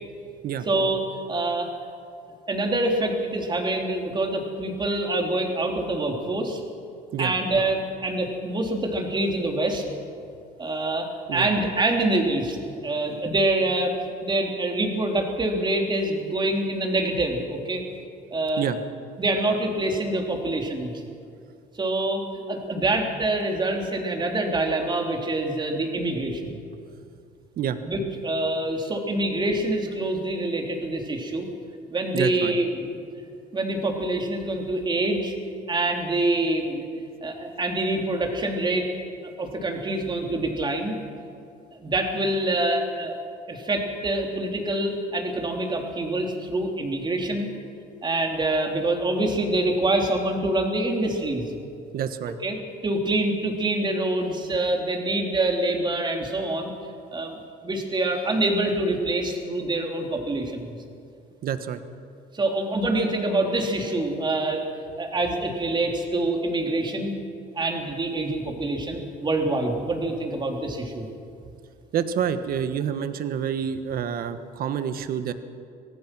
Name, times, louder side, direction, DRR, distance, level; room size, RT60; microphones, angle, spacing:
voice 1, 0.6-1.0 1.3-1.7 2.5-6.6 7.2-9.8 10.6-12.6 12.8-13.9 14.2-17.8 18.3-18.6 19.2-20.9 21.8-22.2 22.5-26.6 27.8-31.5 31.9-33.0 33.5-35.3 35.7-36.8 37.2-38.9 39.2-40.9 41.8-43.1 43.5-47.5 48.0-51.5 52.4-52.6 52.8-56.7 57.1-57.4 57.6-60.8 62.3-64.7 65.0-67.1 67.5-71.1, right 2 dB, 25° right, 2 dB, 3.4 m, -25 dB
voice 2, 32.1-32.5 51.9-52.3 61.4-61.8 71.9-75.3, right 8 dB, 60° right, 10 dB, 1.3 m, -27 dB
25.0 x 18.0 x 6.2 m, 2.5 s
cardioid pair, 110°, 17 cm